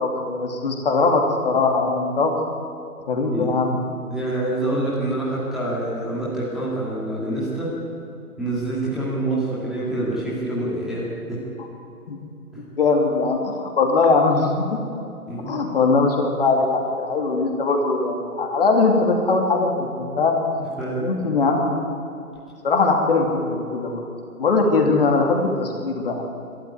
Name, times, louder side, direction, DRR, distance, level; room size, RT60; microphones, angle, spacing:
voice 1, 0.0-2.3 3.1-3.7 10.6-10.9 11.6-11.7 12.1-12.2 12.8-14.8 15.4-20.4 21.0-21.9 22.6-24.0 24.4-26.2, left 3 dB, 40° left, 2 dB, 2.9 m, -21 dB
voice 2, 4.1-7.7 8.4-11.4 12.5-12.6 15.3-15.6 20.8-21.0, right 1 dB, ahead, -9 dB, 2.1 m, -26 dB
21.0 x 13.0 x 9.6 m, 2.7 s
figure-of-eight pair, 145°, 45 cm